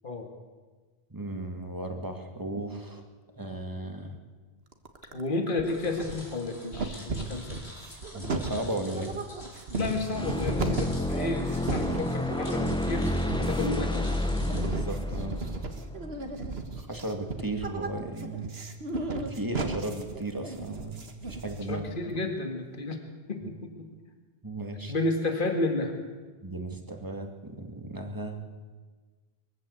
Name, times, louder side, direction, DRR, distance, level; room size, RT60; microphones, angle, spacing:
voice 1, 1.1-3.0 3.3-4.1 8.1-9.2 14.4-15.4 16.8-18.6 19.3-22.2 24.4-24.9 26.4-28.4, right 2 dB, 20° right, 4 dB, 2.1 m, -35 dB
sound 1, 4.7-5.3 5.6-6.4 6.7-21.9, right 3 dB, 75° right, 1.8 m, -35 dB
voice 2, 5.1-7.8 9.8-14.1 21.7-23.0 23.3-23.9 24.9-26.0, left 2 dB, 55° left, 4 dB, 2.1 m, -31 dB
sound 2, 5.6-14.7, left 1 dB, 90° left, 4.5 m, -48 dB
sound 3, 10.1-16.8, left 1 dB, 5° left, 0.9 m, -30 dB
22.5 x 14.5 x 8.2 m, 1.4 s
omnidirectional pair, 1.0 m